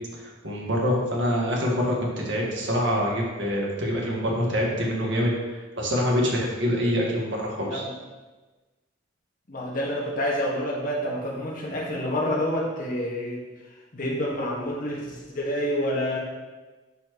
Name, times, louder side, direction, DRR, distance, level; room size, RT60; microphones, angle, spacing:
voice 1, 0.1-1.9 2.2-7.8, equal, 65° right, -2 dB, 1.8 m, -25 dB
voice 2, 9.5-13.4 13.9-16.2, equal, 45° left, -4 dB, 1.7 m, -28 dB
11.5 x 4.4 x 3.1 m, 1.2 s
head